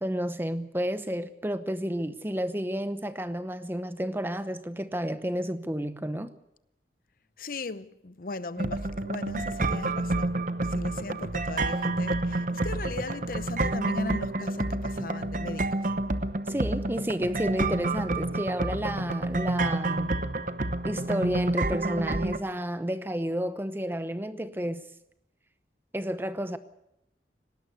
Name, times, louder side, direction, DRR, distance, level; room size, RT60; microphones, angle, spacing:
voice 1, 0.0-6.3 16.5-20.2 20.8-24.8 25.9-26.6, equal, 10° right, 0.9 m, -31 dB
voice 2, 7.4-10.4 10.7-15.8, left 3 dB, 50° left, 0.8 m, -38 dB
sound 1, 8.6-22.4, right 2 dB, 45° right, 0.9 m, -29 dB
19.0 x 18.0 x 8.1 m
head